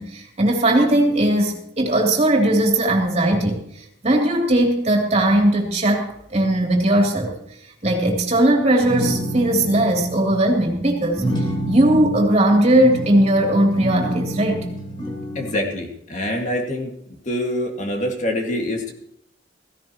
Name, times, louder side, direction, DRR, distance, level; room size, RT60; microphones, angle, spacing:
voice 1, 0.0-3.6 4.0-7.4 7.8-14.7, right 1 dB, 35° right, 0 dB, 3.1 m, -18 dB
sound 1, 8.6-10.4 11.2-12.2 12.7-15.6, equal, 25° left, 3.4 m, -28 dB
voice 2, 15.3-16.9 17.2-18.9, left 1 dB, 40° left, 2 dB, 2.1 m, -25 dB
16.5 x 16.0 x 3.0 m, 0.73 s
head